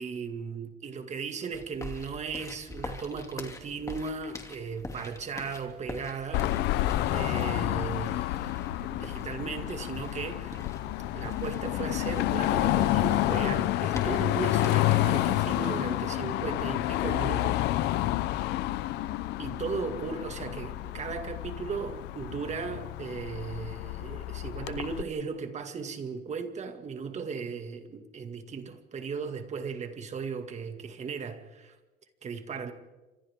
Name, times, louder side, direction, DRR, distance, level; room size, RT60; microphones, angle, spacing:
voice 1, 0.0-6.6 7.1-10.6 11.1-17.7 19.4-31.8 32.2-32.7, right 5 dB, 40° right, 2.2 m, -36 dB
sound 1, 1.5-15.3, left 2 dB, 20° left, 2.8 m, -44 dB
Car passing by / Traffic noise roadway noise / Engine, 6.3-25.0, left 15 dB, 90° left, 0.8 m, -29 dB
29.5 x 25.5 x 3.7 m
cardioid pair, 110°, 17 cm